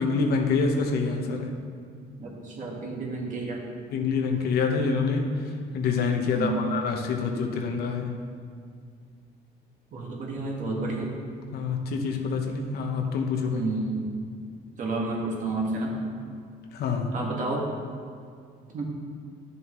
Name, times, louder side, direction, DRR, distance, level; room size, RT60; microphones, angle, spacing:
voice 1, 0.0-1.5 3.9-5.3 5.7-8.2 11.5-13.7 16.7-17.1, left 4 dB, 70° left, 3 dB, 1.0 m, -26 dB
voice 2, 2.2-3.6 6.3-6.6 9.9-11.1 13.5-14.0 14.8-15.9 17.1-17.7 18.7-18.9, right 3 dB, 50° right, -2 dB, 1.7 m, -30 dB
10.5 x 6.9 x 3.1 m, 2.2 s
cardioid pair, 110°, 17 cm